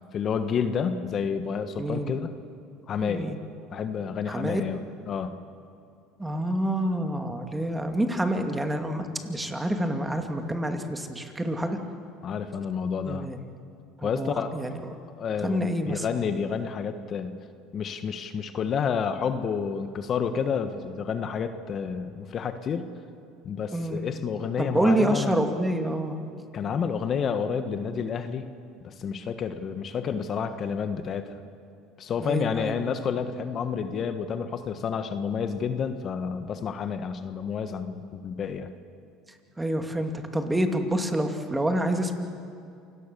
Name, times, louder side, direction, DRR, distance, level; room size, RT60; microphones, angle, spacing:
voice 1, 0.1-2.3 2.9-3.3 3.7-4.8 5.1-5.4 12.2-13.3 14.0-14.5 15.2-17.4 17.7-22.9 23.4-25.3 26.5-28.5 28.8-31.4 32.0-38.7, left 6 dB, 45° left, 9 dB, 1.4 m, -30 dB
voice 2, 1.8-2.2 3.0-3.4 4.3-4.6 6.2-11.8 13.0-13.4 14.0-14.8 15.4-16.1 23.7-24.0 24.6-26.2 32.2-32.8 39.6-42.1, right 1 dB, 10° right, 5 dB, 2.4 m, -27 dB
28.0 x 18.0 x 7.0 m, 2.5 s
supercardioid pair, 95°, 0 cm